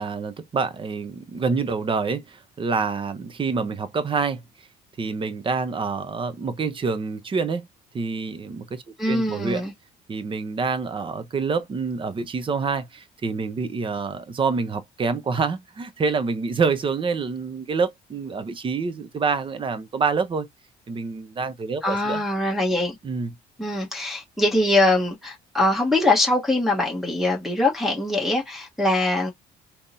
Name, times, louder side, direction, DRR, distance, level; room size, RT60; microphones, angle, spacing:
voice 1, 0.0-4.4 5.0-7.7 7.9-9.7 10.1-20.5 20.9-22.2 23.0-23.3, right 4 dB, 30° right, 0.7 m, -27 dB
voice 2, 9.0-9.7 21.8-23.0 23.6-29.3, left 2 dB, ahead, 1.1 m, -22 dB
3.5 x 3.0 x 2.6 m
cardioid pair, 110°, 17 cm